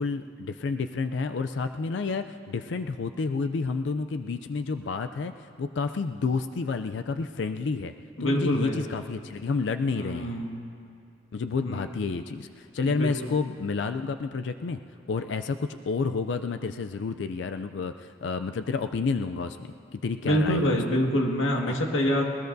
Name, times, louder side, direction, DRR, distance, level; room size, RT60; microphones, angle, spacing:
voice 1, 0.0-7.9 8.2-10.4 11.3-14.8 15.1-20.8 21.7-21.8, left 4 dB, 65° left, 9 dB, 0.4 m, -30 dB
voice 2, 8.2-8.8 9.9-10.6 11.6-11.9 12.8-13.1 20.2-22.3, equal, 85° left, 1 dB, 1.8 m, -26 dB
20.5 x 20.0 x 2.7 m, 2.4 s
head